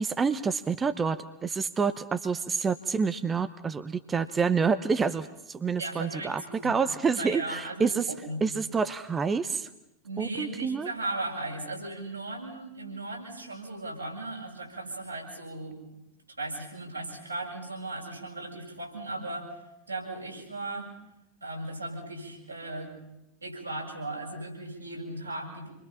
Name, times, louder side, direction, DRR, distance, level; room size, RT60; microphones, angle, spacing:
voice 1, 0.0-8.1 8.4-9.7 10.2-10.9, right 5 dB, 15° right, 11 dB, 0.8 m, -28 dB
voice 2, 5.8-6.8 7.1-8.4 10.0-15.8 16.4-19.5 19.9-20.9 21.4-22.9 23.4-25.7, right 2 dB, 85° right, -3 dB, 7.2 m, -37 dB
28.0 x 23.0 x 5.8 m, 0.89 s
figure-of-eight pair, 90°, 0 cm